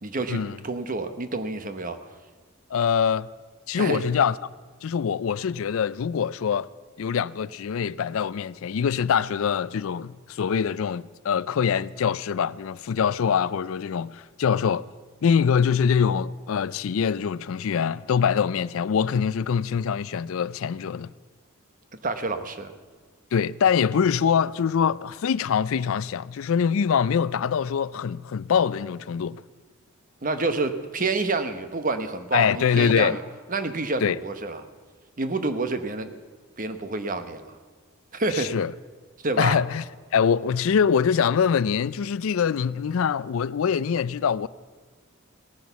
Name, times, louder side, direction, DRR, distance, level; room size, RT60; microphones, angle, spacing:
voice 1, 0.0-2.1 3.8-4.0 22.0-22.7 30.2-33.2 33.5-34.6 35.2-36.1 36.6-37.6 38.1-38.5 39.2-39.6, right 3 dB, 40° right, 1.0 m, -28 dB
voice 2, 2.7-3.3 3.7-4.4 4.8-6.7 7.0-14.8 15.2-21.1 23.3-29.4 32.3-33.2 34.0-34.2 38.3-38.7 39.4-39.8 40.1-44.5, left 7 dB, 70° left, 0.4 m, -24 dB
18.0 x 10.5 x 6.9 m
head